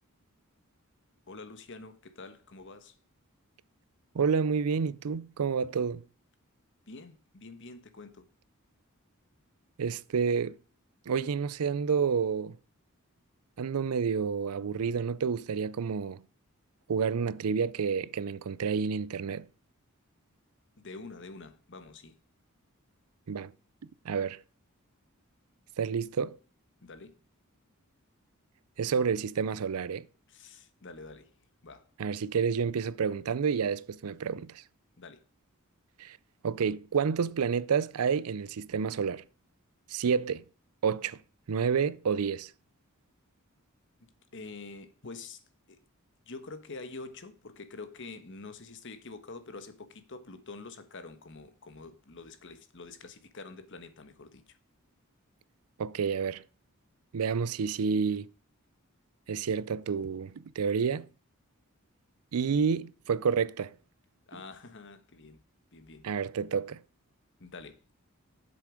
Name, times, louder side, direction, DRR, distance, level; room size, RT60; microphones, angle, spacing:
voice 1, 1.3-3.0 6.9-8.3 20.8-22.2 26.8-27.2 30.3-31.9 35.0-35.3 44.3-45.8 46.2-54.6 64.3-65.4 65.7-66.1 67.4-67.8, left 3 dB, 55° left, 1.2 m, -46 dB
voice 2, 4.1-6.0 9.8-10.6 11.1-12.6 13.6-16.2 16.9-19.5 23.3-23.5 24.0-24.4 25.8-26.4 28.8-30.0 32.0-34.6 36.0-36.2 36.4-39.2 39.9-40.4 40.8-41.2 41.5-42.5 55.8-56.4 57.1-58.3 59.3-61.1 62.3-63.7 66.0-66.8, right 6 dB, 80° right, 0.5 m, -29 dB
7.7 x 7.0 x 5.0 m
head